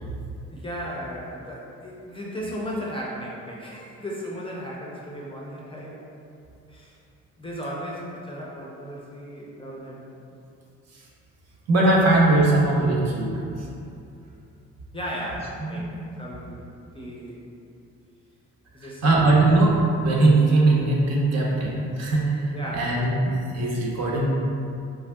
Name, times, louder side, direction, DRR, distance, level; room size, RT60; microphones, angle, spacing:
voice 1, 0.5-6.0 6.7-7.0 7.4-10.1 14.9-16.6 16.9-17.4 18.7-19.4 22.5-22.9, equal, 20° left, -4 dB, 0.4 m, -35 dB
voice 2, 11.7-13.3 15.7-16.0 18.8-19.7 20.0-24.3, right 2 dB, 60° right, -4 dB, 0.7 m, -20 dB
3.3 x 2.6 x 2.2 m, 2.6 s
cardioid pair, 90°, 30 cm